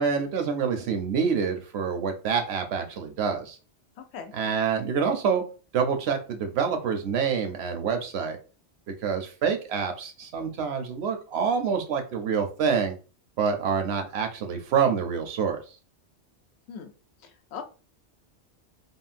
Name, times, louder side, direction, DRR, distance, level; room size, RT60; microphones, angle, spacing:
voice 1, 0.0-3.6 4.3-5.4 5.7-8.4 9.0-13.0 13.4-15.6, right 6 dB, 70° right, 5 dB, 0.9 m, -27 dB
voice 2, 4.0-4.3 16.7-16.9 17.2-17.6, left 7 dB, 70° left, 7 dB, 0.8 m, -40 dB
3.6 x 2.0 x 2.4 m, 0.34 s
omnidirectional pair, 1.2 m